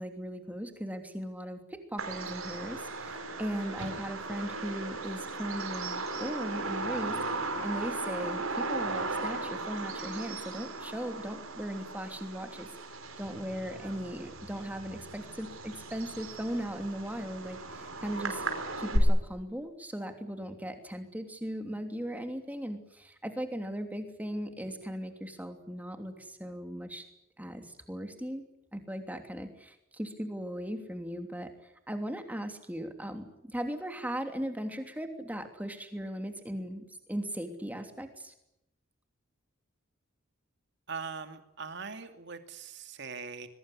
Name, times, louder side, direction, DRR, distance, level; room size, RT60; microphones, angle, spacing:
voice 1, 0.0-12.7 13.2-18.4 18.8-27.0 27.4-28.5 28.7-31.5 31.9-38.3, equal, 10° right, 6 dB, 3.0 m, -38 dB
Bird vocalization bird call bird song, 2.0-19.0, right 2 dB, 80° right, 5.1 m, -37 dB
voice 2, 40.9-43.5, right 5 dB, 55° right, 7 dB, 2.6 m, -41 dB
22.5 x 22.0 x 9.9 m, 0.84 s
head